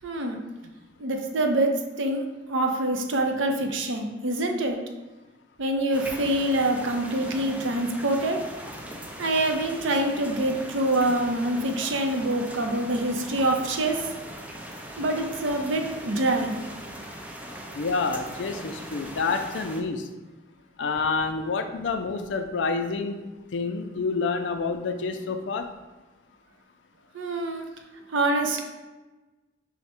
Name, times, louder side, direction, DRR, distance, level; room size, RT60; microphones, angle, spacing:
voice 1, 0.0-0.4 1.0-1.7 2.0-4.8 5.6-8.4 9.2-14.0 15.0-16.6 27.1-27.7 28.1-28.6, right 1 dB, 80° right, 4 dB, 0.6 m, -25 dB
sound 1, 5.9-19.8, right 1 dB, 10° right, 0.4 m, -40 dB
voice 2, 17.7-20.1 20.8-23.2 23.5-25.7, left 4 dB, 70° left, 7 dB, 0.4 m, -28 dB
5.6 x 2.1 x 4.3 m, 1.2 s
head